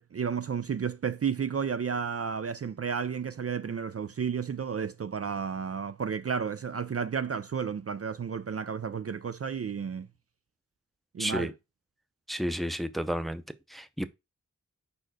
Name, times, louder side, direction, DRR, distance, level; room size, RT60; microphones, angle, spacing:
voice 1, 0.0-10.1 11.1-11.5, right 6 dB, 50° right, 0.4 m, -32 dB
voice 2, 11.2-11.5 12.3-13.4 13.7-14.0, equal, ahead, 0.6 m, -31 dB
5.0 x 4.5 x 6.1 m
wide cardioid pair, 65°, 30 cm